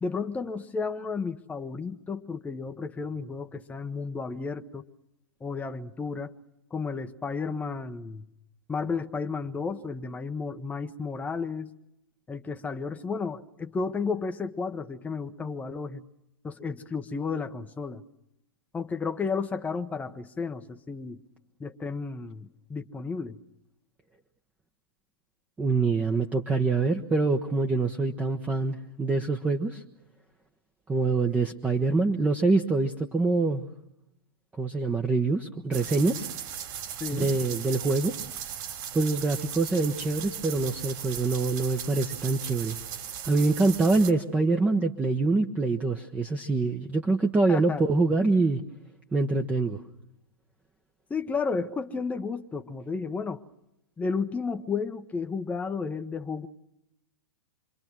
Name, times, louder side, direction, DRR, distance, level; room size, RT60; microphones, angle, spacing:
voice 1, 0.0-4.9 5.4-6.3 6.7-8.3 8.7-11.7 12.3-16.1 16.4-18.0 18.7-21.2 21.6-23.4 37.0-37.3 47.5-47.8 51.1-53.4 54.0-56.5, left 4 dB, 10° left, 6 dB, 1.0 m, -32 dB
voice 2, 25.6-29.8 30.9-33.7 34.6-36.3 37.1-38.1 38.9-42.8 43.2-48.6 49.1-49.8, right 3 dB, 10° right, 4 dB, 1.1 m, -25 dB
sound 1, 35.7-44.1, right 9 dB, 40° right, 3.3 m, -38 dB
27.0 x 23.5 x 6.1 m, 0.86 s
figure-of-eight pair, 105°, 12 cm